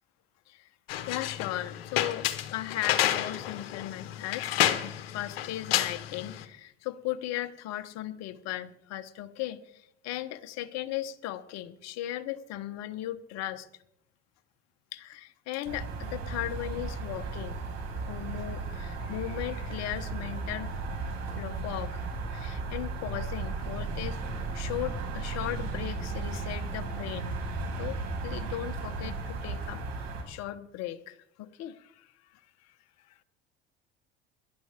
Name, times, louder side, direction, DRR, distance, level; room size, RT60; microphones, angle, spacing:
sound 1, 0.9-6.4, left 12 dB, 80° left, 1.2 m, -30 dB
voice 1, 1.1-4.5 4.8-13.7 14.9-17.6 18.1-20.8 21.3-22.0 22.3-24.2 24.5-27.4 27.8-32.4 33.1-33.2, left 14 dB, 60° left, 10 dB, 1.2 m, -37 dB
sound 2, 15.6-30.2, right 3 dB, 60° right, 5.4 m, -35 dB
19.0 x 11.5 x 3.6 m, 0.75 s
hypercardioid pair, 70°, 29 cm